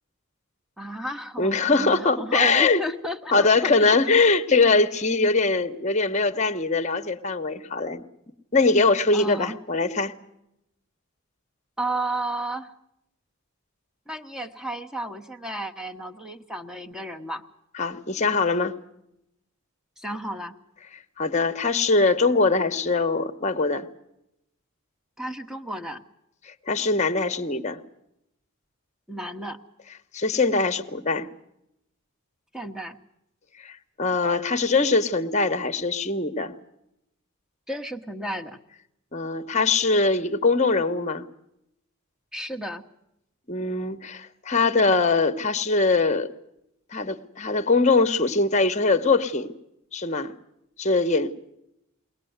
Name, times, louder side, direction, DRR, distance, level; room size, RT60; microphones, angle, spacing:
voice 1, 0.8-4.0 9.1-9.6 11.8-12.7 14.1-17.4 20.0-20.5 25.2-26.0 29.1-29.6 32.5-33.0 37.7-38.6 42.3-42.8, right 1 dB, 5° right, 5 dB, 1.0 m, -32 dB
voice 2, 1.4-2.8 3.3-8.0 8.5-10.1 17.8-18.7 21.2-23.9 26.5-27.8 30.1-31.3 33.6-36.5 39.1-41.2 43.5-46.3 46.9-49.5 49.9-50.3 50.8-51.3, left 3 dB, 30° left, 9 dB, 1.0 m, -22 dB
22.0 x 19.5 x 8.0 m, 0.82 s
head